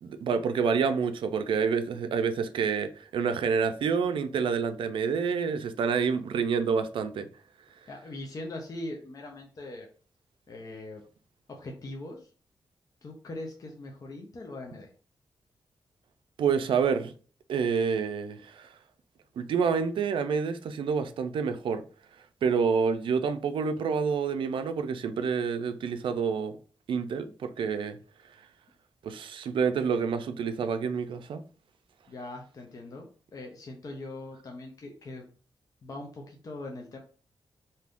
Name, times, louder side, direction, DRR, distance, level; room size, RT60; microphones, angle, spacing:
voice 1, 0.0-7.3 16.4-17.1 17.5-18.8 19.4-21.8 22.4-26.6 26.9-28.0 29.0-31.4, right 6 dB, 80° right, 0.4 m, -28 dB
voice 2, 7.9-9.9 10.5-11.0 11.5-12.3 13.0-14.9 32.1-35.3 35.8-37.0, left 2 dB, 45° left, 0.6 m, -41 dB
2.7 x 2.5 x 3.4 m
wide cardioid pair, 115°, 9 cm